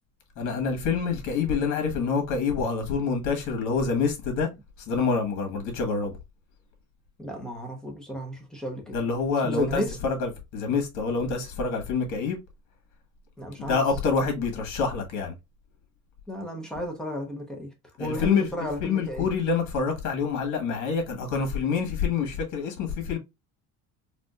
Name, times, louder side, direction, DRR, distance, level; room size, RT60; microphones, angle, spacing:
voice 1, 0.4-4.5 4.9-6.1 8.9-12.4 13.6-15.3 18.0-18.5 18.8-23.2, left 5 dB, 65° left, 1.5 m, -27 dB
voice 2, 7.2-9.0 9.4-10.0 13.4-13.8 16.3-17.7 18.0-19.3, equal, ahead, 0.9 m, -33 dB
4.3 x 2.5 x 2.4 m
cardioid pair, 155°, 32 cm